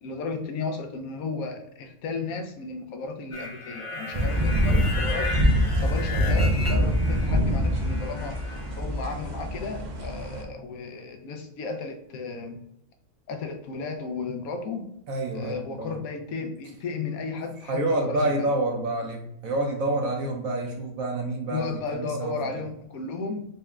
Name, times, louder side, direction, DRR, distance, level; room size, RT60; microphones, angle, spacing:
voice 1, 0.0-5.4 5.7-12.6 13.3-14.8 15.3-18.5 21.5-23.4, left 4 dB, 80° left, 5 dB, 1.1 m, -34 dB
sound 1, 3.3-7.4 7.7-8.8, left 2 dB, 55° left, 0.3 m, -35 dB
sound 2, 4.1-10.4, equal, 55° right, 0.5 m, -24 dB
voice 2, 15.1-16.0 17.7-22.3, right 2 dB, 75° right, 2 dB, 1.3 m, -28 dB
4.1 x 2.2 x 3.5 m, 0.78 s
omnidirectional pair, 1.5 m